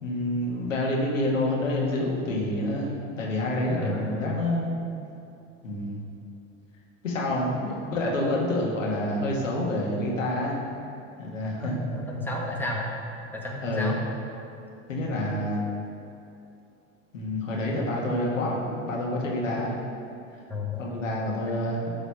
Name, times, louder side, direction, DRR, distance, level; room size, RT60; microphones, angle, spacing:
voice 1, 0.0-4.7 5.6-6.0 7.0-10.6 11.2-11.8 13.6-13.9 14.9-15.6 17.1-19.8 20.8-21.9, left 1 dB, 85° left, -3 dB, 1.8 m, -28 dB
voice 2, 3.7-4.3 11.6-12.9 13.3-14.0 20.5-20.9, left 1 dB, 5° left, -2 dB, 1.6 m, -32 dB
12.0 x 4.0 x 5.7 m, 2.7 s
hypercardioid pair, 75°, 38 cm